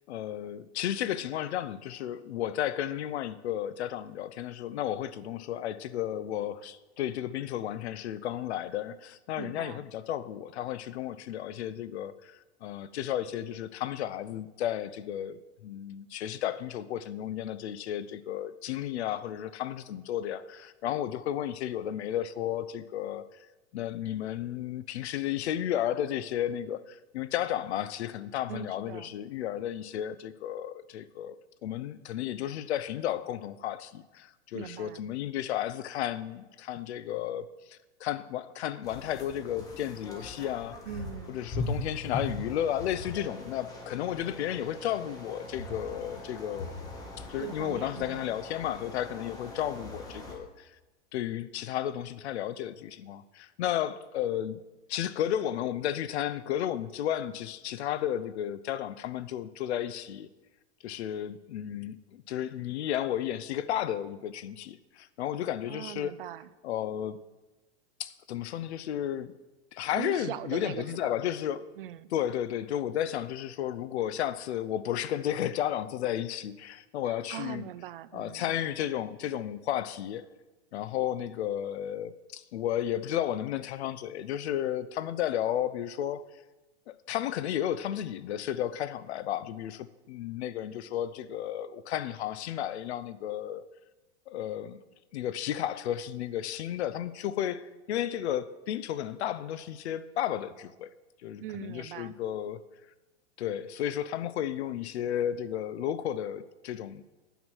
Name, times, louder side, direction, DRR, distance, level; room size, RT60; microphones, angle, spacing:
voice 1, 0.1-23.3 23.7-31.4 31.6-40.8 41.3-46.7 47.2-50.7 51.1-54.6 54.9-60.3 60.8-66.2 66.6-67.2 68.0-69.3 69.7-71.7 72.1-77.7 78.1-80.3 80.7-86.3 86.9-93.6 94.3-94.8 95.1-100.9 101.2-102.6 103.4-107.0, left 11 dB, 65° left, 0.7 m, -33 dB
voice 2, 9.3-9.9 28.5-29.1 34.5-35.1 40.9-41.4 47.4-48.3 65.7-66.5 69.9-71.1 71.8-72.1 77.1-78.5 101.4-102.2, right 12 dB, 50° right, 0.4 m, -41 dB
sound 1, 38.8-50.4, left 2 dB, 10° left, 0.8 m, -40 dB
9.2 x 7.3 x 6.2 m
supercardioid pair, 170°, 36 cm